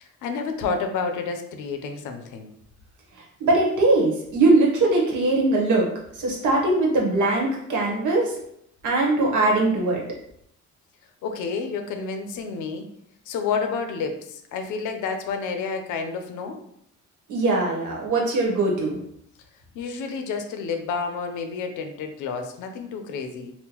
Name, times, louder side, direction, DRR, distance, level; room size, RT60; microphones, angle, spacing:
voice 1, 0.2-2.5 11.2-12.8 13.3-16.6 19.7-23.5, left 5 dB, 85° left, 6 dB, 0.5 m, -30 dB
voice 2, 3.1-8.3 8.8-10.0 17.3-19.0, right 2 dB, 80° right, -1 dB, 1.0 m, -21 dB
3.6 x 2.1 x 2.9 m, 0.72 s
cardioid pair, 90°, 30 cm